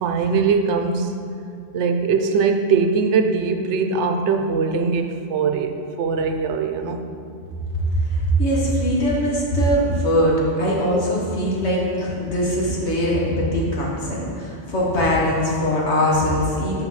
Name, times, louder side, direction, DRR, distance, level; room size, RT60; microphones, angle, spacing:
voice 1, 0.0-1.1 1.7-7.1, right 5 dB, 85° right, 6 dB, 0.9 m, -21 dB
voice 2, 7.7-16.8, equal, 75° left, -4 dB, 1.7 m, -21 dB
6.0 x 5.4 x 5.6 m, 2.4 s
omnidirectional pair, 1.2 m